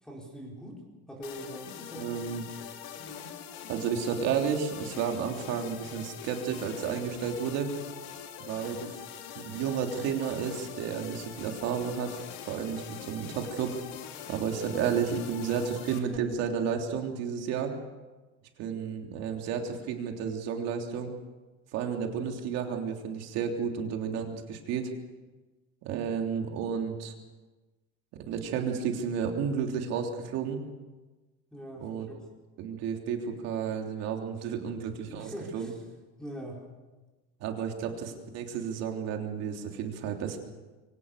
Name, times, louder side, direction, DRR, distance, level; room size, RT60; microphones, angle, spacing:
voice 1, 0.0-0.8 1.1-2.1 3.0-3.3 31.5-32.2 35.1-35.8 36.2-36.7, equal, ahead, -2 dB, 4.6 m, -42 dB
sound 1, 1.2-16.0, left 9 dB, 75° left, 2.9 m, -43 dB
voice 2, 2.0-2.4 3.7-7.7 8.4-8.9 9.3-13.8 14.3-17.7 18.6-21.1 21.7-24.9 25.8-27.1 28.3-30.6 31.7-32.1 32.6-35.7 37.4-40.4, right 7 dB, 60° right, 3 dB, 3.3 m, -32 dB
24.0 x 17.5 x 6.8 m, 1.2 s
cardioid pair, 170°, 29 cm